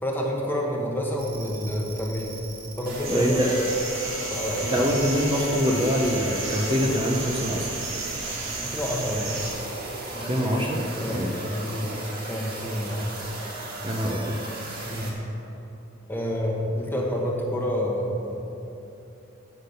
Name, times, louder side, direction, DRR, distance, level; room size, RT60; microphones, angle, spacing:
voice 1, 0.0-2.3 2.8-3.7 4.3-5.1 8.6-9.3 10.1-12.0 12.3-13.1 14.9-15.1 16.1-18.4, equal, 10° left, -1 dB, 1.1 m, -29 dB
sound 1, 1.2-15.1, right 2 dB, 50° right, 1.7 m, -37 dB
sound 2, 3.0-9.5, right 3 dB, 80° right, 1.7 m, -34 dB
voice 2, 3.1-3.5 4.7-7.7 10.1-11.3 13.8-14.4, equal, 25° right, -1 dB, 0.7 m, -25 dB
Bowed string instrument, 3.3-7.7, left 4 dB, 40° left, 0.5 m, -38 dB
8.4 x 6.0 x 6.7 m, 2.9 s
head